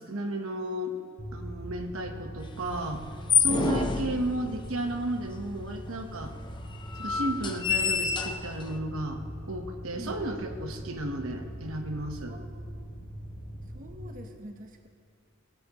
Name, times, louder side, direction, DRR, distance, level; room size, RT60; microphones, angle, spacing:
voice 1, 0.0-3.0 3.4-6.3 7.0-9.2 9.5-12.3, right 1 dB, 75° right, 4 dB, 1.1 m, -33 dB
Mechanical fan, 1.2-14.0, right 1 dB, 70° left, 3.0 m, -42 dB
sound 1, 2.7-4.8 5.6-5.7 5.9-6.0 6.7-8.8, left 5 dB, 20° left, 0.6 m, -28 dB
voice 2, 12.3-12.9 13.7-14.9, right 1 dB, 40° right, 3 dB, 0.9 m, -46 dB
19.0 x 12.5 x 3.0 m, 2.1 s
head